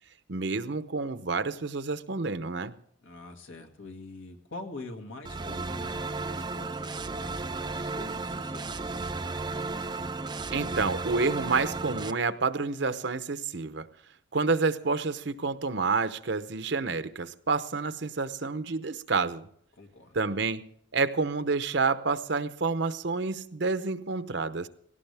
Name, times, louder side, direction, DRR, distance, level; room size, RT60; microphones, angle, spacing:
voice 1, 0.3-2.7 10.5-13.9 14.3-19.5 20.1-24.7, right 4 dB, 60° right, 11 dB, 0.8 m, -29 dB
voice 2, 3.0-9.1 19.8-20.2, left 2 dB, 80° left, 3 dB, 2.1 m, -45 dB
sound 1, 5.2-12.1, right 3 dB, 20° right, 0.6 m, -34 dB
17.5 x 17.5 x 3.5 m, 0.64 s
head